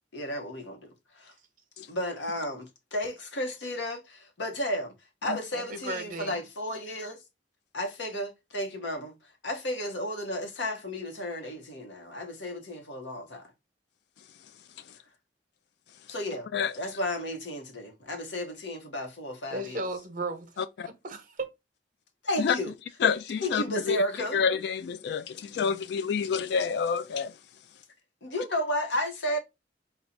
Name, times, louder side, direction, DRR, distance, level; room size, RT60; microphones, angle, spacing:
voice 1, 0.1-1.3 1.9-4.9 5.2-7.2 7.7-13.5 16.1-16.5 16.8-19.9 22.2-22.7 23.4-24.4 28.2-29.4, left 1 dB, 85° left, 1.1 m, -33 dB
voice 2, 5.5-6.4 19.5-20.5 20.8-21.5, right 2 dB, 50° right, 0.9 m, -35 dB
voice 3, 23.0-24.0 24.3-27.3, left 6 dB, 65° left, 0.3 m, -28 dB
4.4 x 2.4 x 3.9 m
head